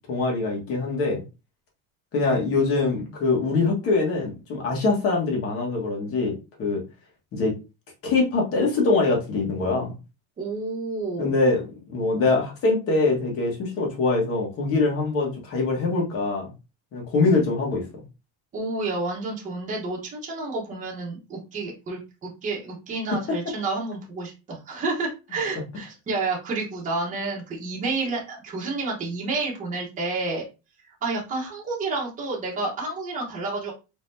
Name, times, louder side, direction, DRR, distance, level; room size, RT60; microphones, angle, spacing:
voice 1, 0.1-1.2 2.1-6.3 6.6-6.8 7.3-7.5 8.0-10.0 11.2-16.5 16.9-17.8, left 3 dB, 40° left, 0 dB, 1.8 m, -23 dB
voice 2, 10.4-11.3 18.5-30.4 31.0-33.7, right 3 dB, 20° right, -4 dB, 1.4 m, -30 dB
4.3 x 3.9 x 2.8 m, 0.29 s
cardioid pair, 160°, 36 cm